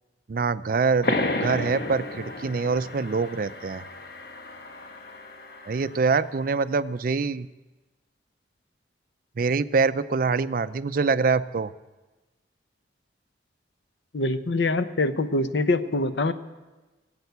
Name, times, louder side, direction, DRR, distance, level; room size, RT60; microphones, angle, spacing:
voice 1, 0.3-1.2 1.4-3.8 5.7-7.5 9.4-11.7, right 4 dB, 50° right, 15 dB, 0.4 m, -24 dB
sound 1, 1.0-6.3, left 2 dB, 55° left, 1.2 m, -32 dB
voice 2, 14.1-16.3, left 2 dB, 85° left, 11 dB, 0.8 m, -24 dB
19.0 x 8.2 x 8.1 m, 1.2 s
head